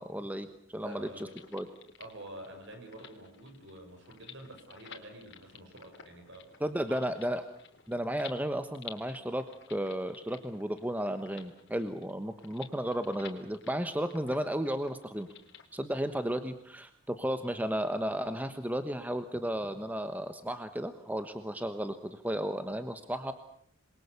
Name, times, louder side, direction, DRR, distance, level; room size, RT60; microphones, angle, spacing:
voice 1, 0.0-1.1 1.5-1.7 6.6-7.4 7.9-15.3 15.7-23.3, equal, 10° right, 9 dB, 1.1 m, -34 dB
voice 2, 0.8-1.4 2.0-6.5 6.7-7.3, right 1 dB, 55° right, 4 dB, 7.1 m, -48 dB
sound 1, 0.9-15.7, left 8 dB, 55° left, 3.6 m, -53 dB
28.0 x 22.5 x 7.1 m, 0.65 s
head